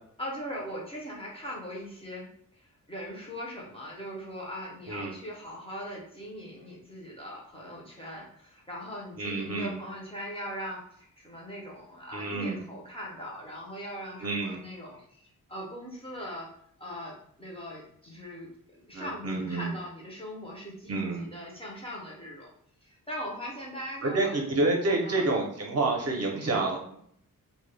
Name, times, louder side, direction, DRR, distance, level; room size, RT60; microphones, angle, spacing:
voice 1, 0.2-2.3 2.5-16.5 16.8-22.5 22.8-24.4 25.0-25.3, equal, 15° left, -4 dB, 0.4 m, -40 dB
voice 2, 9.2-9.8 12.1-12.6 14.2-14.6 18.9-19.7 20.9-21.2 24.0-27.0, right 2 dB, 45° right, 0 dB, 0.5 m, -28 dB
2.1 x 2.0 x 3.1 m, 0.67 s
wide cardioid pair, 165°, 35 cm